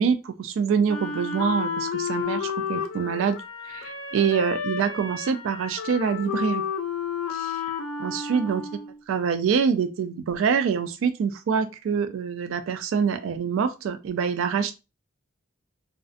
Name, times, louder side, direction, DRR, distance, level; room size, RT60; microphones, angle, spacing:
voice 1, 0.0-3.4 3.7-6.6 7.3-7.7 8.0-8.7 9.1-14.7, right 6 dB, 65° right, 0.3 m, -25 dB
Wind instrument woodwind instrument, 0.9-9.0, left 6 dB, 85° left, 0.4 m, -31 dB
2.5 x 2.0 x 2.4 m
head